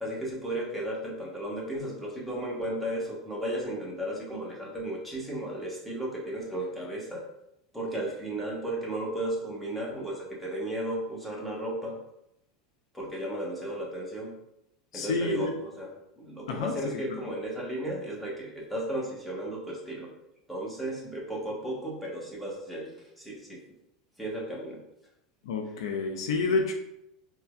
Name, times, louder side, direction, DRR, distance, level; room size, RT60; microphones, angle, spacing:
voice 1, 0.0-7.2 7.7-12.0 12.9-14.3 14.9-20.1 20.5-22.9 23.2-23.6 24.2-24.8, right 1 dB, ahead, -4 dB, 1.1 m, -34 dB
voice 2, 14.9-15.5 16.5-17.2 25.4-26.7, left 3 dB, 75° left, 3 dB, 0.4 m, -29 dB
4.3 x 2.2 x 2.4 m, 0.81 s
hypercardioid pair, 85°, 3 cm